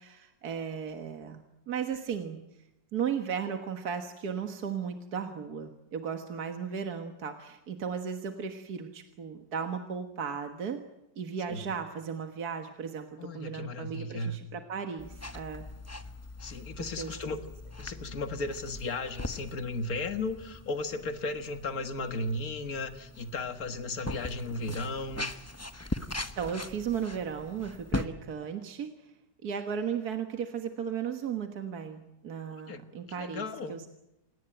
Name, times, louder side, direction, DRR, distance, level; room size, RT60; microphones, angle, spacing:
voice 1, 0.0-2.4 2.9-10.8 11.2-15.7 17.0-17.1 26.4-29.1 29.4-33.9, right 7 dB, 70° right, 6 dB, 2.0 m, -35 dB
voice 2, 13.2-14.4 16.4-17.4 17.8-25.3 32.6-32.8 33.2-33.8, left 2 dB, 60° left, 8 dB, 2.1 m, -35 dB
sound 1, 15.0-28.1, left 2 dB, 10° left, 0.8 m, -40 dB
28.0 x 18.5 x 9.0 m, 0.93 s
omnidirectional pair, 1.7 m